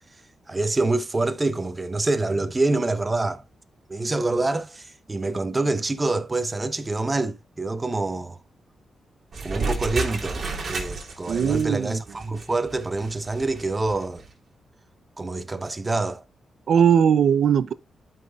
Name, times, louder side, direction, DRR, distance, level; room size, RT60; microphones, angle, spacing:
voice 1, 0.5-3.4 3.9-8.4 9.4-10.4 10.7-14.2 15.2-16.2, right 2 dB, 20° right, 1.0 m, -26 dB
sound 1, 9.3-14.3, right 3 dB, 50° right, 3.2 m, -32 dB
voice 2, 11.3-12.0 16.7-17.7, right 8 dB, 70° right, 0.6 m, -19 dB
12.5 x 5.6 x 2.4 m
cardioid pair, 110°, 0 cm